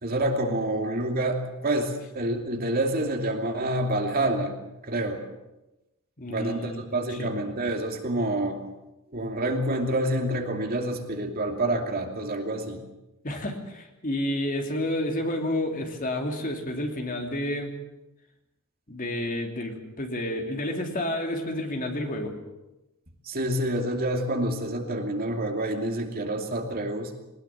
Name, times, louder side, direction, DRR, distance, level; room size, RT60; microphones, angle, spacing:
voice 1, 0.0-4.6 4.8-5.2 6.3-8.6 9.1-12.8 23.2-27.1, right 1 dB, 45° right, 3 dB, 2.7 m, -27 dB
voice 2, 6.2-7.3 13.2-17.7 18.9-22.3, left 1 dB, 40° left, 3 dB, 2.9 m, -30 dB
21.0 x 20.0 x 7.5 m, 0.96 s
head